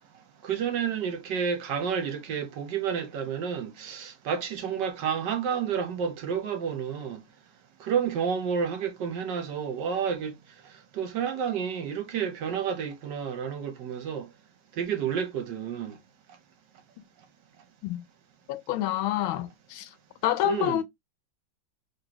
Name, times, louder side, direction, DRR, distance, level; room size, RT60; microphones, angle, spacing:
voice 1, 0.4-7.2 7.8-10.3 10.9-14.3 14.7-16.0 20.4-20.8, right 7 dB, 65° right, 1.3 m, -30 dB
voice 2, 18.5-19.9 20.2-20.8, left 13 dB, 85° left, 1.4 m, -27 dB
3.9 x 3.3 x 2.8 m
omnidirectional pair, 2.2 m